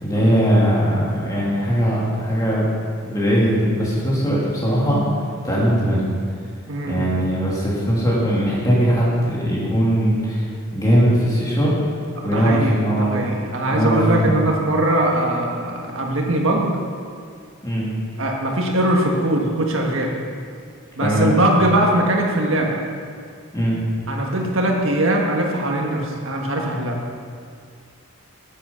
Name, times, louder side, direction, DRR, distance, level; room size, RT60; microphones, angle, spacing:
voice 1, 0.0-2.6 3.1-5.0 5.4-6.0 6.9-10.4 10.7-11.7 12.2-13.1 13.7-14.4 17.6-17.9 21.0-21.3 23.5-23.8, equal, 15° left, -6 dB, 2.7 m, -19 dB
voice 2, 6.7-7.1 12.2-16.7 18.2-20.1 21.0-22.8 24.1-27.0, right 1 dB, 60° right, 0 dB, 1.7 m, -21 dB
9.9 x 9.3 x 5.7 m, 2.1 s
head